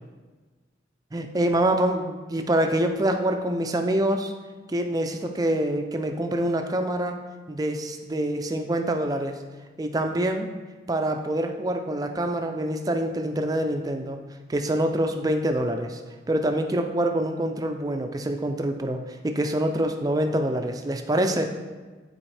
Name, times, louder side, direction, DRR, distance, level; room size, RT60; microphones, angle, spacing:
voice 1, 1.1-4.3 4.7-7.2 7.5-9.4 9.8-10.5 10.9-14.2 14.5-16.0 16.3-21.5, right 1 dB, 20° right, 5 dB, 0.4 m, -25 dB
8.7 x 4.2 x 3.3 m, 1.3 s
head